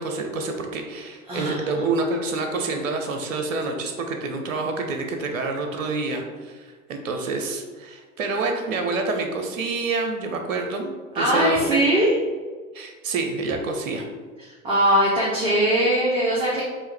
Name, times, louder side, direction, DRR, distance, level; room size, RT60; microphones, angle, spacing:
voice 1, 0.0-11.8 12.7-14.0, right 3 dB, 65° right, 4 dB, 0.7 m, -27 dB
voice 2, 1.3-1.8 11.2-12.2 14.6-16.6, right 1 dB, 10° right, -6 dB, 0.7 m, -21 dB
4.6 x 2.5 x 3.4 m, 1.4 s
figure-of-eight pair, 85°, 42 cm